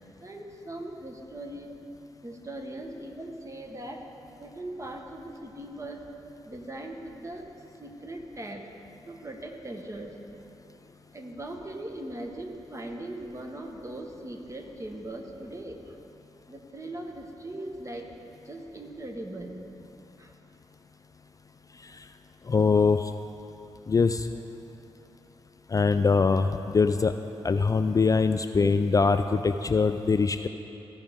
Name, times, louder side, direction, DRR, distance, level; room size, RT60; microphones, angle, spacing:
voice 1, 0.2-1.7 2.2-4.1 4.4-6.1 6.4-7.5 7.8-8.7 9.1-10.2 11.1-16.0 16.5-18.1 18.4-19.6 20.2-20.3, right 1 dB, 30° right, 3 dB, 1.2 m, -39 dB
voice 2, 22.5-23.1 23.9-24.3 25.7-27.1 27.4-30.5, left 4 dB, 35° left, 9 dB, 0.3 m, -23 dB
15.0 x 5.2 x 3.6 m, 2.9 s
supercardioid pair, 45°, 11 cm